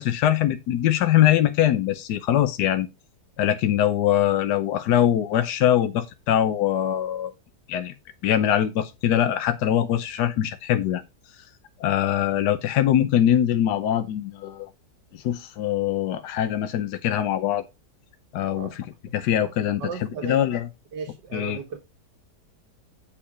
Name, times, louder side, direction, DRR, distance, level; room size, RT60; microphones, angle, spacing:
voice 1, 0.0-2.9 3.4-7.3 7.7-7.9 8.2-11.0 11.3-11.4 11.8-14.7 15.1-17.6 18.3-18.7 19.1-19.8 20.2-20.7 21.3-21.6, left 11 dB, 75° left, 1.3 m, -22 dB
voice 2, 19.8-20.5 20.9-21.8, right 5 dB, 90° right, 1.9 m, -35 dB
8.8 x 5.0 x 4.8 m
omnidirectional pair, 1.8 m